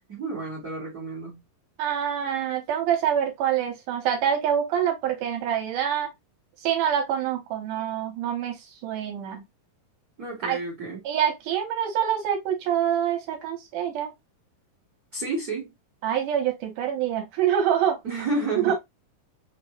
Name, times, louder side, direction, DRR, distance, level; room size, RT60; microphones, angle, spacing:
voice 1, 0.1-1.4 10.2-11.0 15.1-15.7 18.0-18.7, right 3 dB, 45° right, 1.2 m, -30 dB
voice 2, 1.8-6.1 6.6-9.4 10.5-10.6 11.0-14.1 16.0-18.0 18.6-18.7, right 9 dB, 80° right, 2.3 m, -26 dB
5.1 x 2.1 x 2.9 m
omnidirectional pair, 3.8 m